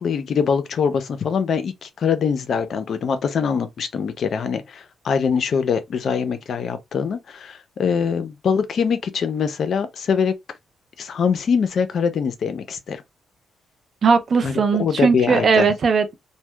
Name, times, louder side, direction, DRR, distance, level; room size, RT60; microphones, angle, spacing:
voice 1, 0.0-10.3 11.0-13.0 14.4-15.7, left 6 dB, 60° left, 0.4 m, -23 dB
voice 2, 14.0-16.1, right 5 dB, 50° right, 0.4 m, -18 dB
2.7 x 2.1 x 2.2 m
cardioid pair, 105°, 0 cm